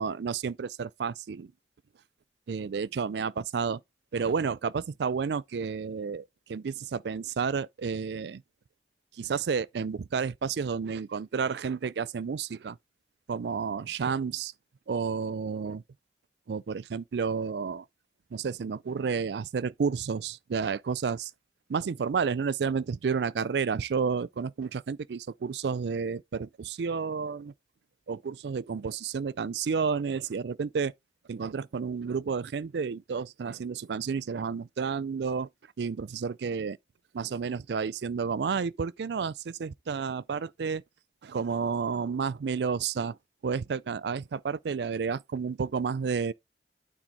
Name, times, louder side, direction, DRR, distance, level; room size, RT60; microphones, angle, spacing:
voice 1, 0.0-1.5 2.5-3.8 4.1-8.4 9.2-12.8 13.3-14.5 14.9-15.8 16.5-17.8 18.3-21.3 21.7-27.5 28.1-30.9 31.3-35.5 35.8-36.8 37.1-40.8 41.2-43.2 43.4-46.3, right 5 dB, 75° right, 0.4 m, -31 dB
9.0 x 4.0 x 3.9 m
head